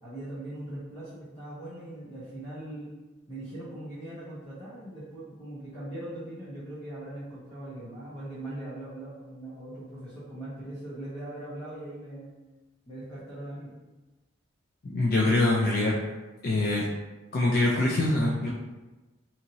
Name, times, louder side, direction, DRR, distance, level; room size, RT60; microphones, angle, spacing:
voice 1, 0.0-2.9 3.3-12.3 12.9-13.7, right 1 dB, 30° left, -10 dB, 0.8 m, -40 dB
voice 2, 14.8-15.9 16.4-16.9 17.3-18.5, left 2 dB, 45° left, -4 dB, 0.4 m, -24 dB
2.9 x 2.8 x 2.6 m, 1.2 s
head